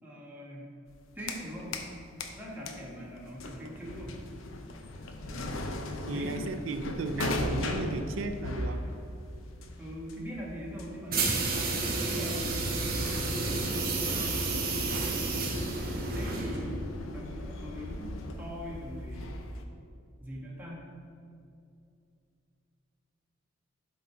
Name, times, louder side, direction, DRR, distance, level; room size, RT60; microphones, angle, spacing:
voice 1, 0.0-0.7 1.1-1.8 2.3-4.3 5.3-6.5 9.8-12.5 13.4-13.9 16.1-16.8 17.1-19.4 20.2-20.8, equal, 10° right, -5 dB, 1.5 m, -42 dB
sound 1, 0.9-1.9 2.2-19.6, left 1 dB, 80° left, 0.7 m, -38 dB
voice 2, 6.1-8.8, right 3 dB, 75° right, 8 dB, 0.5 m, -34 dB
sound 2, 11.1-16.7, right 3 dB, 45° right, 1.3 m, -31 dB
11.5 x 3.9 x 4.4 m, 2.4 s
head